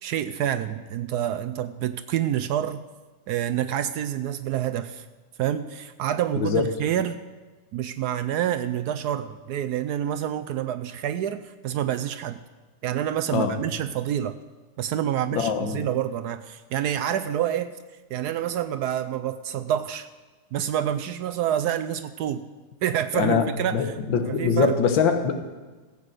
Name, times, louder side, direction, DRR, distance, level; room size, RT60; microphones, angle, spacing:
voice 1, 0.0-2.8 3.3-5.0 5.4-7.2 7.7-12.4 12.8-14.4 14.8-17.7 18.1-20.1 20.5-22.4 22.8-24.0 24.2-24.8, right 10 dB, 70° right, 10 dB, 1.0 m, -27 dB
voice 2, 15.3-15.8 23.1-25.4, left 6 dB, 85° left, 6 dB, 1.8 m, -23 dB
15.0 x 8.3 x 6.6 m, 1.3 s
omnidirectional pair, 2.0 m